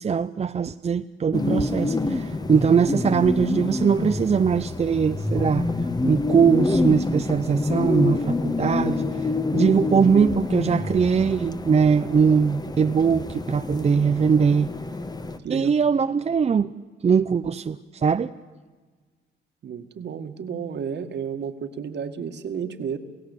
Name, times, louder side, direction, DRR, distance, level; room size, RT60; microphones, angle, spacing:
voice 1, 0.0-5.7 6.0-14.7 15.5-16.7 17.0-18.3, right 6 dB, 30° right, 0.6 m, -21 dB
sound 1, 1.3-15.4, left 2 dB, 20° left, 1.5 m, -27 dB
voice 2, 15.4-15.7 19.6-23.0, right 7 dB, 60° right, 2.0 m, -32 dB
28.5 x 16.5 x 8.4 m
cardioid pair, 90°, 20 cm